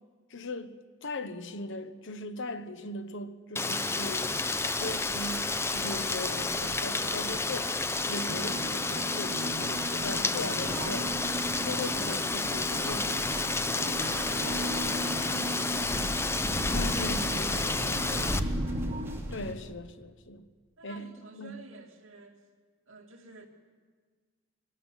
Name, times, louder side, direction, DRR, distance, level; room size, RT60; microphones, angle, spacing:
voice 1, 0.3-7.8 8.1-11.1 11.6-13.2 16.7-17.7 19.3-20.4 20.8-21.6, left 2 dB, 65° left, 1.1 m, -39 dB
Rain, 3.6-18.4, left 3 dB, 15° left, 0.7 m, -31 dB
sound 1, 3.9-19.5, equal, 10° right, 2.6 m, -39 dB
sound 2, 8.3-19.2, right 1 dB, 35° right, 0.8 m, -39 dB
voice 2, 13.8-16.7 17.5-18.7 20.8-22.5 22.9-23.5, right 2 dB, 70° right, 2.6 m, -48 dB
22.0 x 13.0 x 9.9 m
head